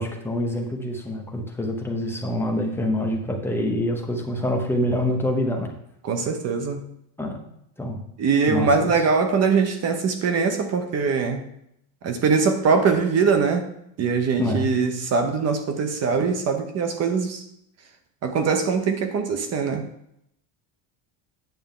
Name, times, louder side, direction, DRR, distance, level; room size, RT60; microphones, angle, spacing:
voice 1, 0.0-5.7 7.2-7.4 7.8-8.0 8.5-9.0 14.4-14.7, left 1 dB, 5° left, 1 dB, 0.8 m, -26 dB
voice 2, 6.0-6.8 8.2-11.4 12.0-13.7 14.0-17.4 18.2-19.9, right 5 dB, 30° right, 7 dB, 0.8 m, -22 dB
9.2 x 6.8 x 3.7 m, 0.76 s
cardioid pair, 170°, 50 cm